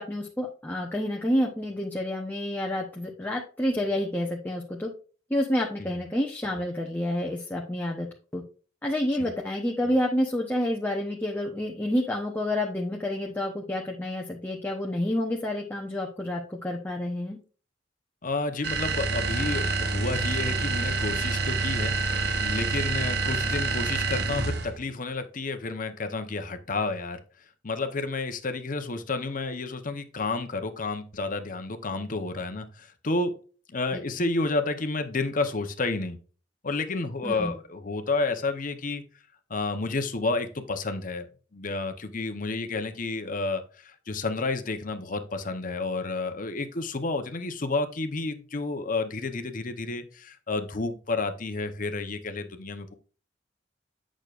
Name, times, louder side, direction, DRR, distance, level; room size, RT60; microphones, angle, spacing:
voice 1, 0.0-4.9 5.3-8.1 8.3-8.4 8.8-17.4 34.2-34.3 37.2-37.6, left 1 dB, 10° left, 0 dB, 0.9 m, -29 dB
voice 2, 18.2-21.9 22.4-27.2 27.6-33.3 33.7-36.2 36.6-39.0 39.5-41.3 41.5-52.9, left 3 dB, 45° left, 8 dB, 0.9 m, -30 dB
sound 1, 18.6-24.8, right 4 dB, 60° right, 1.1 m, -27 dB
8.8 x 6.2 x 2.5 m, 0.38 s
head